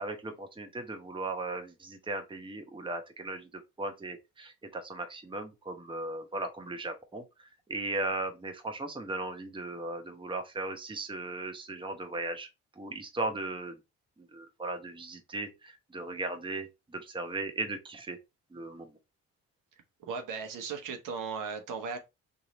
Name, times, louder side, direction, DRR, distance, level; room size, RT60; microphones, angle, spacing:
voice 1, 0.0-3.5 3.8-7.2 7.7-12.5 12.8-13.8 14.2-18.2 18.5-18.9, right 2 dB, 15° right, 0.9 m, -37 dB
voice 2, 20.0-22.0, right 5 dB, 65° right, 1.1 m, -36 dB
3.1 x 2.7 x 3.9 m
supercardioid pair, 55°, 34 cm